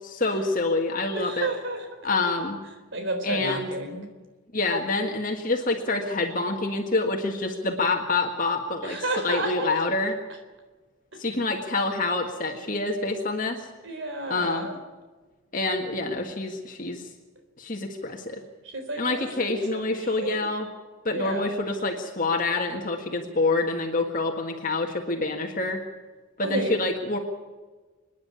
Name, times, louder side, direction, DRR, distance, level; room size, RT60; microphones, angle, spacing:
voice 1, 0.0-1.5 2.0-2.6 3.2-3.7 4.5-10.1 11.2-13.7 14.3-14.7 15.5-17.1 17.6-18.4 19.0-20.7 21.0-25.8 26.4-27.2, left 3 dB, 40° left, 2 dB, 1.7 m, -27 dB
voice 2, 1.1-2.1 2.9-4.1 8.8-9.8 13.8-14.8 18.6-20.5 21.1-21.5 26.4-26.7, right 2 dB, 60° right, 6 dB, 3.8 m, -32 dB
25.5 x 10.5 x 9.8 m, 1.3 s
head